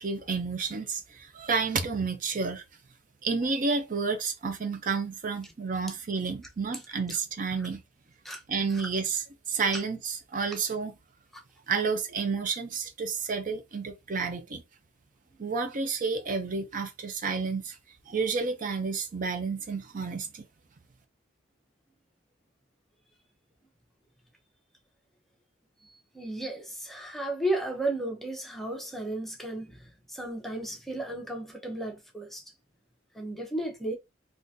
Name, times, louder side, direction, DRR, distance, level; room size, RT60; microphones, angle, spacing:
voice 1, 0.0-2.6 3.2-7.8 8.5-9.2 9.5-10.9 11.7-14.6 15.4-17.8 18.1-20.4, right 4 dB, 45° right, 0.5 m, -30 dB
voice 2, 25.8-32.4 33.1-34.0, right 1 dB, ahead, 0.7 m, -34 dB
3.7 x 2.5 x 2.6 m
head